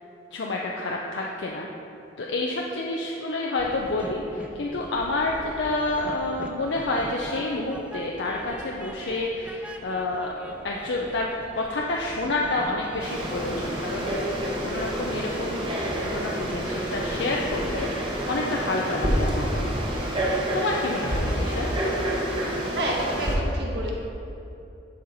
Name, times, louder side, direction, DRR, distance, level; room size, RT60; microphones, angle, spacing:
voice 1, 0.3-1.7 2.2-14.2 14.4-19.7 20.5-21.7, left 2 dB, 75° left, -2 dB, 0.6 m, -29 dB
Train, 3.6-17.5, right 1 dB, 5° right, 0.3 m, -42 dB
Frog, 13.0-23.4, right 1 dB, 30° right, 1.1 m, -28 dB
voice 2, 22.7-23.9, right 1 dB, 65° right, -2 dB, 1.3 m, -29 dB
11.0 x 4.4 x 4.0 m, 2.8 s
head